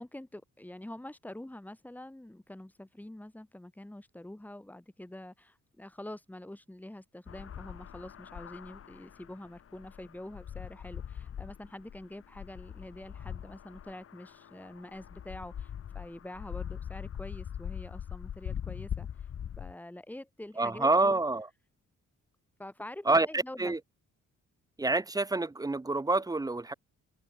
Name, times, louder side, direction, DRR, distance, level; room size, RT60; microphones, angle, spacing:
voice 1, 0.0-19.3 19.6-21.2 22.6-23.7, left 1 dB, 5° left, 5.3 m, -46 dB
Midnight Highway, 7.3-19.7, left 9 dB, 45° left, 1.6 m, -42 dB
voice 2, 20.6-21.5 23.1-23.8 24.8-26.7, right 2 dB, 10° right, 0.9 m, -27 dB
wide cardioid pair, 180°, 32 cm